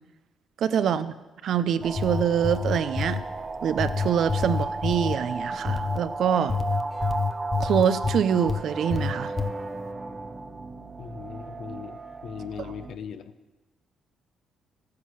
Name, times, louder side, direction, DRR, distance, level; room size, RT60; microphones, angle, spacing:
voice 1, 0.6-1.1 1.4-3.2 3.6-6.6 7.6-9.3, right 8 dB, 70° right, 12 dB, 0.7 m, -25 dB
sound 1, 1.8-3.2 3.8-5.2 5.7-6.0 6.5-8.6 8.9-9.5, left 5 dB, 30° left, 0.8 m, -28 dB
sound 2, 1.8-13.0, right 3 dB, 25° right, 0.9 m, -34 dB
voice 2, 11.0-13.3, left 7 dB, 65° left, 10 dB, 0.9 m, -39 dB
14.0 x 9.6 x 6.4 m, 1.1 s
cardioid pair, 90°, 0 cm